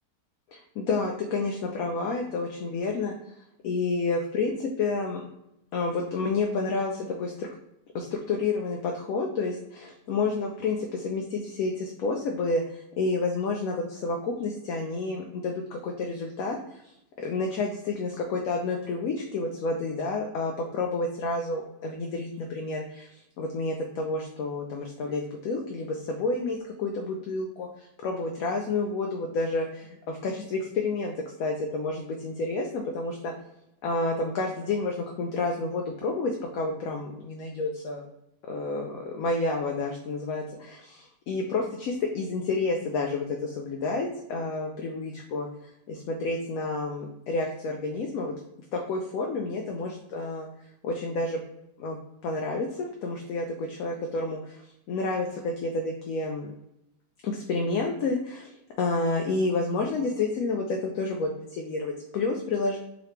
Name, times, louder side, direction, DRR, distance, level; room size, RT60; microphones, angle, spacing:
voice 1, 0.5-3.1 3.6-5.2 5.7-7.5 7.9-16.6 16.8-16.9 17.2-31.1 31.4-33.3 33.8-38.1 38.5-45.5 45.9-48.3 48.7-50.5 50.8-51.4 51.8-52.0 52.2-54.6 54.9-56.5 57.2-62.8, left 3 dB, 70° left, 1 dB, 0.9 m, -30 dB
3.8 x 3.1 x 3.2 m, 0.85 s
omnidirectional pair, 1.8 m